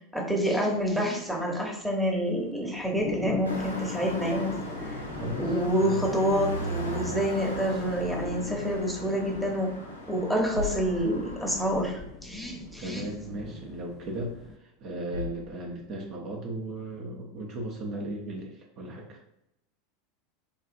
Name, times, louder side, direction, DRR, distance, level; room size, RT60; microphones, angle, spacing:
voice 1, 0.1-5.1 5.4-9.7 10.1-13.0, equal, ahead, -1 dB, 0.9 m, -28 dB
sound 1, 0.7-14.6, left 4 dB, 30° left, 0.4 m, -42 dB
sound 2, 3.4-11.8, equal, 85° left, 0.5 m, -38 dB
voice 2, 5.1-5.6 5.8-6.2 12.8-19.2, right 1 dB, 45° right, -1 dB, 0.6 m, -36 dB
sound 3, 10.5-14.4 14.8-16.1, left 5 dB, 90° right, 0.6 m, -43 dB
3.9 x 2.3 x 2.5 m, 0.82 s
figure-of-eight pair, 80°, 0 cm